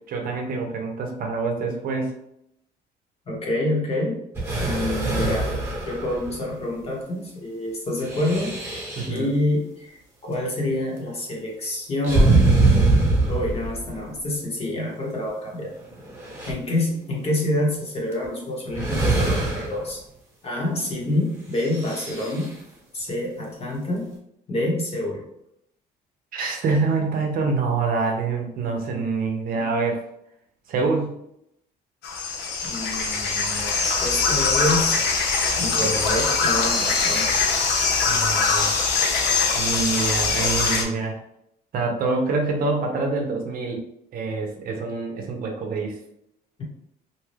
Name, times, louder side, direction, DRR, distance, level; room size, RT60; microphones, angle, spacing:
voice 1, 0.1-2.1 9.0-9.3 26.3-30.0 30.7-31.2 38.1-38.7 39.5-41.1 41.7-43.8 44.1-46.0, right 4 dB, 60° right, 3 dB, 0.7 m, -26 dB
voice 2, 3.3-4.2 4.6-5.6 5.9-12.5 13.3-15.7 16.5-20.0 20.4-22.5 22.9-24.1 24.5-25.2 32.6-35.0 35.6-37.3, left 1 dB, 35° left, -2 dB, 1.1 m, -27 dB
sound 1, 4.3-6.6 8.0-9.2 12.0-14.0 15.3-15.4 15.9-16.5 18.1-18.3 18.7-19.9 21.6-22.5, right 2 dB, 15° right, 1.1 m, -23 dB
sound 2, 32.0-40.8, left 4 dB, 75° left, 0.6 m, -22 dB
2.7 x 2.3 x 3.2 m, 0.77 s
cardioid pair, 110°, 17 cm